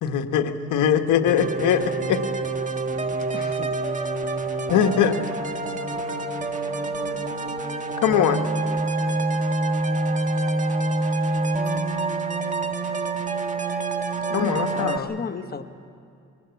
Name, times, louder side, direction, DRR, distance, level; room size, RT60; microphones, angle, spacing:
voice 1, 0.0-2.2 4.7-5.2 8.0-8.4 14.3-15.1, left 8 dB, 80° left, 6 dB, 1.3 m, -21 dB
sound 1, 1.3-15.0, right 2 dB, 25° right, 1.5 m, -26 dB
voice 2, 3.3-3.7 14.3-15.7, left 5 dB, 30° left, 10 dB, 1.0 m, -34 dB
voice 3, 4.6-7.4, right 2 dB, 70° right, 4 dB, 4.8 m, -46 dB
22.5 x 18.5 x 8.1 m, 2.5 s
cardioid pair, 90°, 30 cm